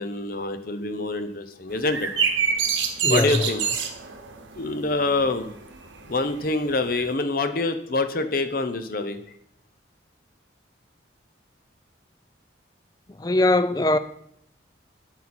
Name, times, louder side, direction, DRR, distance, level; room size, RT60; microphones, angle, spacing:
voice 1, 0.0-2.1 3.1-3.6 4.6-5.5 6.1-9.2, left 3 dB, 50° left, 0.8 m, -26 dB
sound 1, 1.7-7.1, right 6 dB, 85° right, 1.1 m, -27 dB
voice 2, 3.0-3.5 13.2-14.0, left 2 dB, 20° left, 0.4 m, -21 dB
8.2 x 8.2 x 4.4 m
head